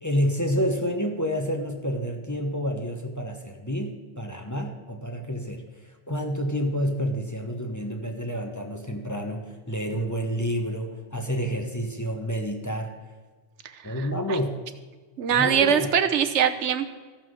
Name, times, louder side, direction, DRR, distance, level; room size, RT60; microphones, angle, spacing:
voice 1, 0.0-5.6 6.1-12.9 13.8-14.6 15.3-15.9, equal, 15° left, 3 dB, 1.0 m, -29 dB
voice 2, 13.7-14.4 15.2-16.9, right 8 dB, 90° right, 9 dB, 1.1 m, -23 dB
14.0 x 5.8 x 6.3 m, 1.4 s
omnidirectional pair, 1.2 m